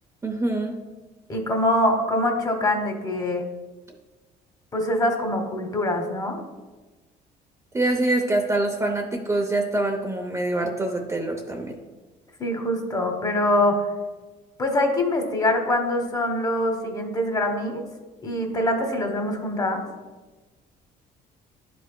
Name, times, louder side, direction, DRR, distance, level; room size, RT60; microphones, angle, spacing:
voice 1, 0.2-0.8 7.7-11.8, right 2 dB, 15° right, 1 dB, 0.6 m, -25 dB
voice 2, 1.3-3.4 4.7-6.4 12.4-13.8 14.6-17.8 18.2-19.8, left 1 dB, 25° left, 3 dB, 1.2 m, -24 dB
10.5 x 5.1 x 2.2 m, 1.2 s
cardioid pair, 110°, 17 cm